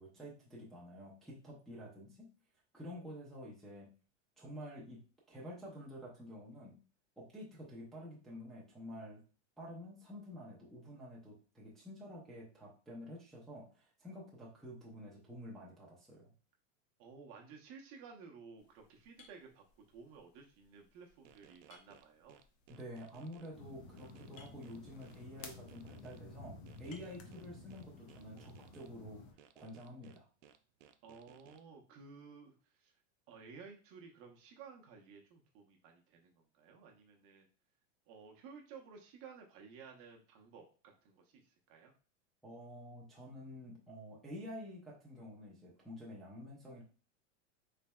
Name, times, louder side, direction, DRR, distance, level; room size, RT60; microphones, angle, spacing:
voice 1, 0.0-2.3 2.7-3.9 4.4-6.8 7.2-9.2 9.6-16.3 22.7-29.2 29.5-30.3 42.4-46.8, equal, ahead, -6 dB, 0.6 m, -49 dB
voice 2, 17.0-22.4 31.0-32.9 33.3-37.5 38.1-41.9, right 5 dB, 35° right, 2 dB, 0.7 m, -55 dB
sound 1, 18.6-27.2, left 5 dB, 80° left, 0.9 m, -67 dB
sound 2, 21.2-23.5 24.0-26.2 26.7-28.9 29.4-31.6, right 9 dB, 75° right, 0.5 m, -62 dB
sound 3, 23.5-29.3, left 3 dB, 55° left, 0.8 m, -53 dB
3.9 x 3.3 x 2.2 m, 0.38 s
supercardioid pair, 145°, 38 cm